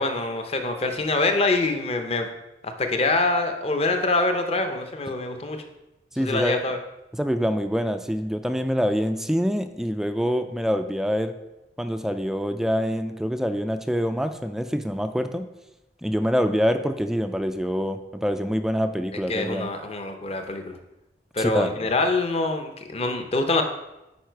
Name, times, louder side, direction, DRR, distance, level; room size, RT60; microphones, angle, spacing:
voice 1, 0.0-2.3 2.6-5.6 6.2-6.8 19.3-20.8 21.3-23.6, left 2 dB, 35° left, 6 dB, 0.7 m, -25 dB
voice 2, 6.1-6.6 7.1-11.4 11.8-15.5 16.0-19.7 21.4-21.9, equal, 5° right, 8 dB, 0.3 m, -25 dB
9.4 x 4.7 x 4.6 m, 0.97 s
head